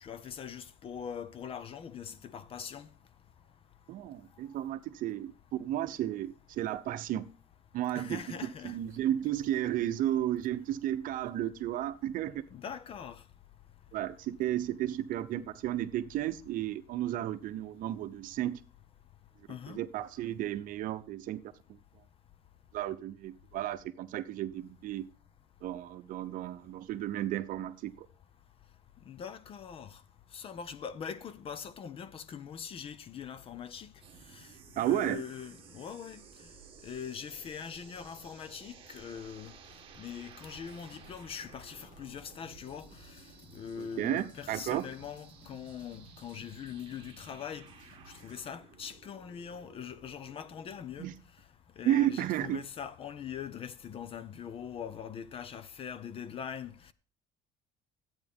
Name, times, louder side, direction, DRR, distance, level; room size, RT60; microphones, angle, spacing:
voice 1, 0.0-2.9 7.9-8.8 12.5-13.2 19.5-19.8 29.1-30.0 30.3-33.9 34.8-36.2 36.8-39.5 40.0-42.9 43.5-47.7 48.2-51.1 51.8-56.7, left 7 dB, 35° left, 0.6 m, -42 dB
voice 2, 3.9-5.3 5.6-7.3 7.7-12.4 13.9-18.6 19.7-21.4 22.7-25.1 25.6-28.1 34.8-35.2 43.8-44.9 51.0-51.2 51.8-52.6, right 12 dB, 55° right, 0.8 m, -33 dB
sound 1, 34.0-50.8, right 7 dB, 35° right, 1.5 m, -56 dB
sound 2, 40.4-48.4, left 1 dB, 50° left, 2.5 m, -59 dB
13.0 x 8.8 x 3.6 m
cardioid pair, 155°, 17 cm